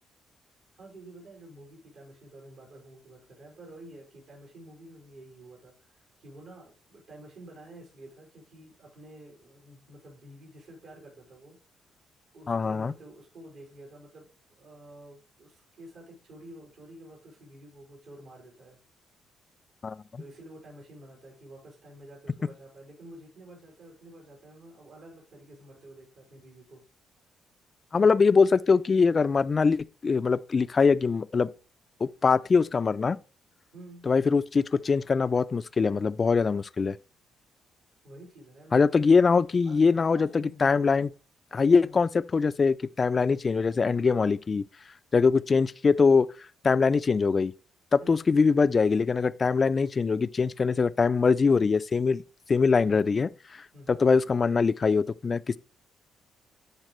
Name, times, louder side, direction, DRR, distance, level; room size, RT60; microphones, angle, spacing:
voice 1, 0.8-11.6 12.3-18.8 20.2-26.8 28.0-28.1 33.7-34.1 38.0-39.0 39.6-39.8 40.1-41.1 41.7-42.0 48.0-48.4 53.7-54.2, right 1 dB, 75° right, 4.7 m, -50 dB
voice 2, 12.5-12.9 19.8-20.0 27.9-31.5 32.0-33.2 34.1-37.0 38.7-41.1 41.5-44.7 45.1-46.3 46.6-47.5 47.9-52.2 52.5-55.6, left 5 dB, 35° left, 0.3 m, -23 dB
12.0 x 4.3 x 3.1 m
cardioid pair, 90°, 0 cm